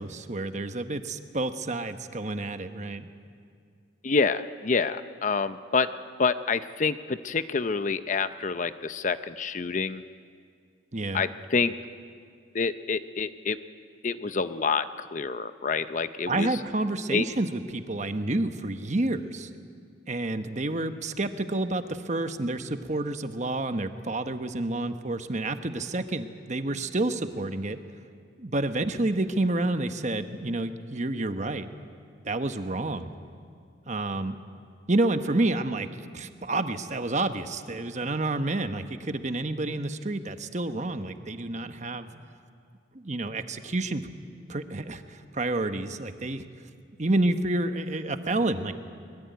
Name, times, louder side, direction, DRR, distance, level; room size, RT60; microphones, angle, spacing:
voice 1, 0.0-3.1 10.9-11.2 16.3-19.5 20.1-27.8 28.4-31.7 32.2-33.1 33.9-34.3 34.9-35.9 36.1-42.2 42.9-44.0 44.5-46.5 47.0-48.7, right 2 dB, 40° right, 9 dB, 1.0 m, -29 dB
voice 2, 4.0-5.9 6.2-10.0 11.1-11.7 12.5-13.6 14.0-16.6 17.1-17.3, left 4 dB, 40° left, 12 dB, 0.6 m, -27 dB
23.0 x 21.0 x 9.3 m, 2.3 s
head